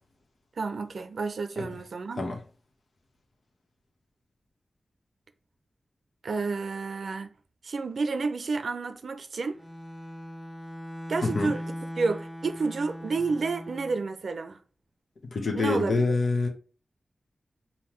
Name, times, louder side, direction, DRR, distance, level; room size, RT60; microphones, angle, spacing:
voice 1, 0.6-2.3 6.2-7.3 7.6-9.6 11.1-11.6 12.0-14.6 15.5-16.1, right 4 dB, 75° right, 0.5 m, -30 dB
Bowed string instrument, 9.5-14.1, equal, 5° right, 0.5 m, -39 dB
voice 2, 11.2-11.5 15.3-16.5, left 3 dB, 80° left, 1.0 m, -26 dB
5.6 x 2.2 x 3.1 m
wide cardioid pair, 110°, 0 cm